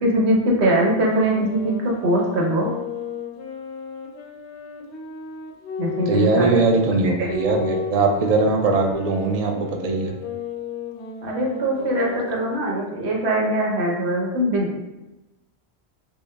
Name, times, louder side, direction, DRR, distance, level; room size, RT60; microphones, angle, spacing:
voice 1, 0.0-2.7 5.8-6.6 7.2-7.3 11.2-14.7, right 1 dB, 80° right, -1 dB, 1.1 m, -22 dB
sound 1, 1.1-6.6 7.2-12.6, left 5 dB, 90° left, 0.9 m, -35 dB
voice 2, 6.1-10.1, right 3 dB, 60° right, 2 dB, 0.4 m, -20 dB
6.0 x 2.0 x 2.2 m, 1.0 s
omnidirectional pair, 1.1 m